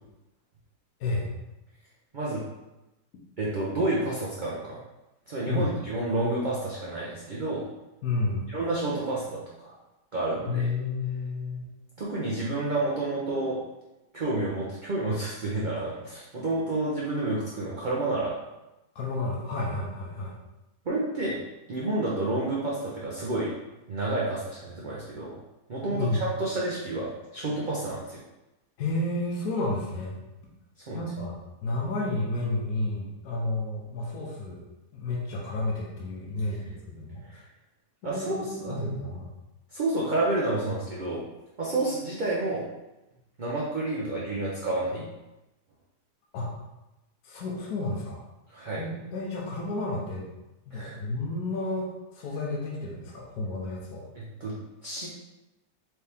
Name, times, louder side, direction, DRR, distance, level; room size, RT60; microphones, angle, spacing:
voice 1, 1.0-1.3 5.5-5.7 8.0-8.5 10.5-11.6 18.9-20.3 25.9-26.2 28.8-30.2 30.9-31.3 31.6-34.6 34.9-37.4 38.0-39.3 46.3-46.6 47.2-48.2 48.8-50.2 50.7-54.0, left 2 dB, 70° left, -3 dB, 1.3 m, -31 dB
voice 2, 3.4-4.8 5.3-7.7 8.5-9.7 10.1-10.7 12.0-13.6 14.1-18.4 20.9-23.5 23.9-25.3 25.7-28.2 30.9-31.0 37.3-37.4 38.0-38.9 39.7-41.2 41.6-42.6 43.4-45.1 48.5-48.8 50.7-51.0 54.2-54.5 54.8-55.1, right 2 dB, 60° right, -6 dB, 0.5 m, -30 dB
4.5 x 2.9 x 3.4 m, 0.98 s
omnidirectional pair, 1.8 m